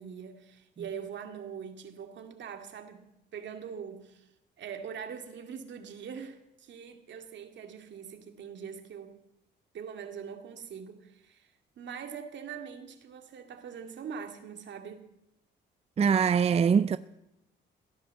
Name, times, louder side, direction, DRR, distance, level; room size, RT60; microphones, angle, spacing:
voice 1, 0.0-4.3 4.6-9.2 9.7-15.1, right 7 dB, 65° right, 2.3 m, -43 dB
voice 2, 16.0-17.0, right 7 dB, 30° right, 0.5 m, -23 dB
17.0 x 10.5 x 7.6 m
cardioid pair, 90°, 20 cm